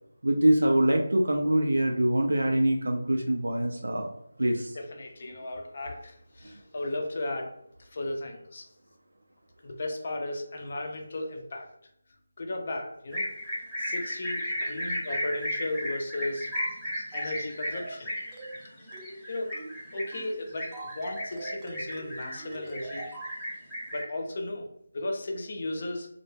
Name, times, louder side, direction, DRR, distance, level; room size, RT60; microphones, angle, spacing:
voice 1, 0.2-4.1 4.4-4.7, right 1 dB, 85° right, 2 dB, 0.4 m, -24 dB
voice 2, 4.7-7.5 7.8-8.7 9.6-11.7 12.4-13.3 13.8-16.5 17.1-18.1 18.7-18.9 19.3-19.5 19.9-20.7 20.9-23.1 23.9-24.7 24.9-26.1, left 2 dB, 45° left, 3 dB, 0.5 m, -35 dB
sound 1, 13.1-24.0, equal, 5° left, 0.8 m, -35 dB
sound 2, 16.5-16.8 17.1-17.4 17.7-18.0 18.3-18.6 18.9-19.2 19.5-19.8 20.1-20.4 20.7-23.4, right 2 dB, 15° right, 0.4 m, -42 dB
2.1 x 2.0 x 3.1 m, 0.75 s
figure-of-eight pair, 160°, 0 cm